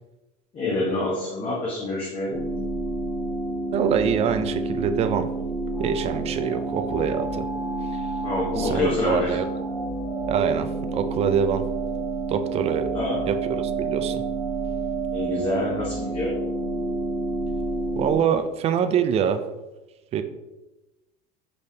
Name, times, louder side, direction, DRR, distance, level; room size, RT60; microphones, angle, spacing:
voice 1, 0.5-2.4 8.2-9.4 12.9-13.2 15.1-16.3, left 2 dB, 30° left, -4 dB, 1.0 m, -27 dB
sound 1, 2.3-18.2, right 3 dB, ahead, 0.7 m, -29 dB
voice 2, 3.7-5.3 5.8-7.5 7.9-8.1 8.6-9.4 10.3-11.7 12.3-13.0 13.3-14.2 18.0-19.4 20.1-20.2, right 7 dB, 35° right, 10 dB, 0.4 m, -25 dB
5.4 x 3.2 x 2.8 m, 1.0 s
supercardioid pair, 120°, 19 cm